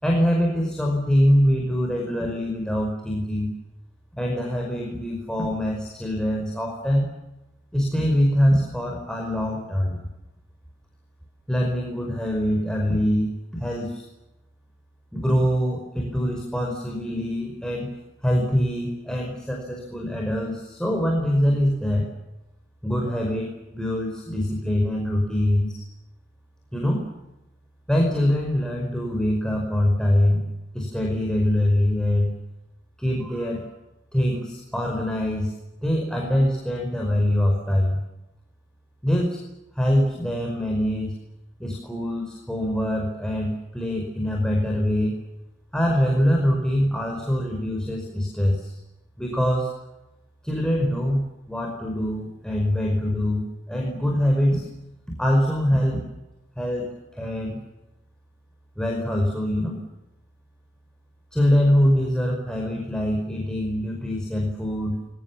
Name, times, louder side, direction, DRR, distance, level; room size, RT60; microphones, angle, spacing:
voice 1, 0.0-3.5 4.1-7.1 7.7-10.0 11.5-14.0 15.1-17.9 18.2-22.1 22.8-25.8 26.7-27.1 27.9-30.4 30.7-32.3 33.0-33.7 34.1-35.5 35.8-38.0 39.0-39.4 39.7-41.1 41.6-45.2 45.7-48.8 49.2-49.7 50.4-54.7 55.1-56.0 56.6-57.6 58.8-59.8 61.3-65.0, equal, 5° left, 0 dB, 5.1 m, -23 dB
29.0 x 22.5 x 7.3 m, 0.96 s
head